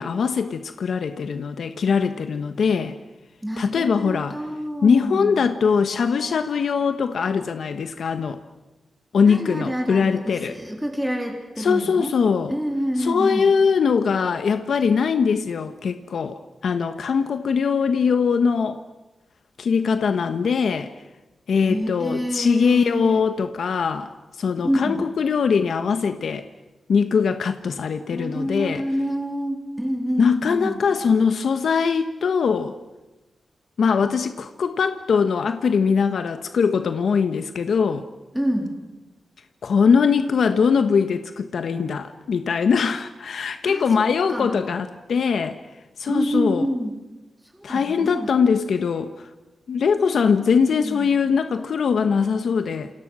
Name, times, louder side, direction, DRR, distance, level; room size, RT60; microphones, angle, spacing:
voice 1, 0.0-3.0 3.6-4.4 4.8-8.4 9.1-10.5 11.6-12.5 13.0-18.8 19.6-20.9 21.5-24.1 24.4-26.4 26.9-28.8 30.2-32.7 33.8-38.0 39.6-45.6 46.0-46.6 47.6-49.1 49.7-52.9, left 6 dB, 75° left, 8 dB, 1.3 m, -21 dB
voice 2, 3.4-5.4 9.3-12.1 12.5-13.5 21.6-23.2 24.6-25.1 28.1-30.8 38.3-38.8 43.6-44.6 46.1-47.0 47.5-48.3 50.6-51.2, equal, 5° right, 1 dB, 3.6 m, -27 dB
28.5 x 28.0 x 6.3 m, 1.1 s
wide cardioid pair, 125°, 0 cm